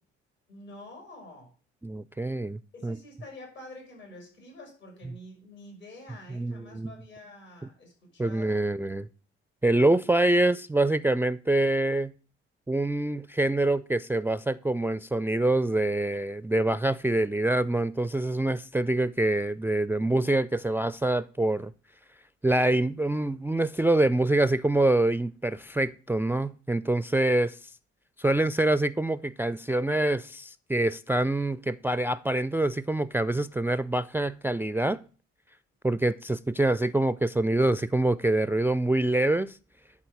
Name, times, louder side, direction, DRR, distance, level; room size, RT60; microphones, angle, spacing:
voice 1, 0.5-1.5 2.7-8.6, left 1 dB, 75° left, 5.5 m, -47 dB
voice 2, 1.8-3.0 5.0-5.1 6.3-6.9 8.2-9.1 9.6-12.1 12.7-21.7 22.4-27.6 28.2-35.0 35.8-39.6, right 2 dB, 5° right, 0.3 m, -25 dB
11.0 x 4.2 x 7.9 m
figure-of-eight pair, 45°, 33 cm